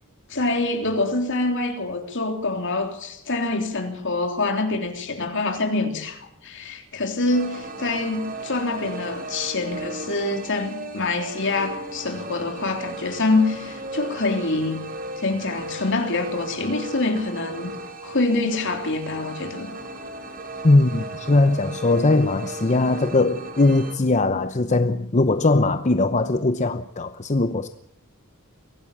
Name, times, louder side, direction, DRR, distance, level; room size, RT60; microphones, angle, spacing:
voice 1, 0.3-14.9 15.2-17.7 18.0-19.7, left 2 dB, 60° left, 3.5 m, -25 dB
sound 1, 7.3-24.0, right 2 dB, 40° right, 3.9 m, -36 dB
voice 2, 20.6-27.7, left 2 dB, 35° left, 0.8 m, -20 dB
23.5 x 17.0 x 7.3 m
head